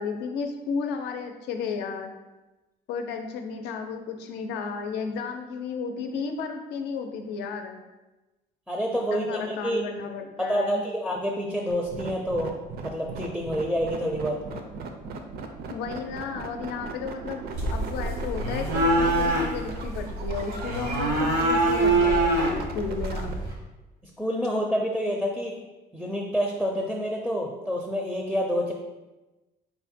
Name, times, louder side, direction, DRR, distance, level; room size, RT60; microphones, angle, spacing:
voice 1, 0.0-2.1 2.9-7.8 9.1-10.8 15.7-23.3, left 5 dB, 85° left, 5 dB, 0.5 m, -33 dB
voice 2, 8.7-9.8 10.4-12.5 12.8-14.4 24.2-25.5 25.9-28.7, equal, ahead, -1 dB, 0.4 m, -28 dB
sound 1, 11.7-23.3, right 4 dB, 65° right, 0.5 m, -38 dB
sound 2, 17.5-23.5, right 2 dB, 90° right, 1.0 m, -25 dB
4.4 x 2.1 x 4.2 m, 1.1 s
cardioid pair, 110°, 17 cm